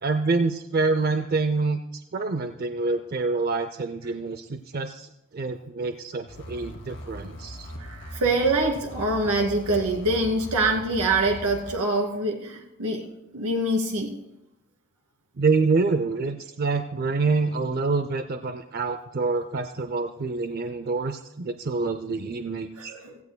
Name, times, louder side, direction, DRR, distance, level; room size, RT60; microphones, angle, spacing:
voice 1, 0.0-1.8 2.1-5.1 5.3-7.7 15.4-22.9, right 3 dB, 40° right, 8 dB, 0.5 m, -26 dB
sound 1, 6.3-11.7, equal, 55° left, 2.4 m, -40 dB
voice 2, 7.8-13.0 13.3-14.1 22.8-23.2, right 2 dB, 90° right, 2 dB, 2.5 m, -25 dB
16.5 x 16.0 x 2.2 m, 0.87 s
head